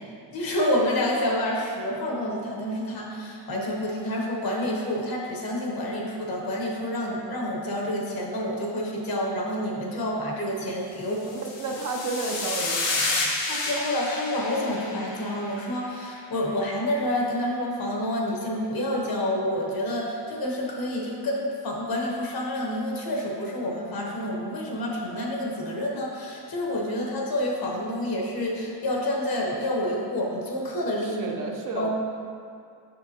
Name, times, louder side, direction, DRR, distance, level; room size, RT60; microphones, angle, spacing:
voice 1, 0.3-11.3 13.5-31.3 31.8-31.9, left 1 dB, 55° left, -2 dB, 1.2 m, -28 dB
sound 1, 11.2-15.7, left 3 dB, 85° left, 1.2 m, -30 dB
voice 2, 11.4-13.3 31.0-31.9, right 3 dB, 50° right, 1 dB, 0.7 m, -32 dB
6.8 x 6.0 x 2.9 m, 2.4 s
cardioid pair, 145°, 42 cm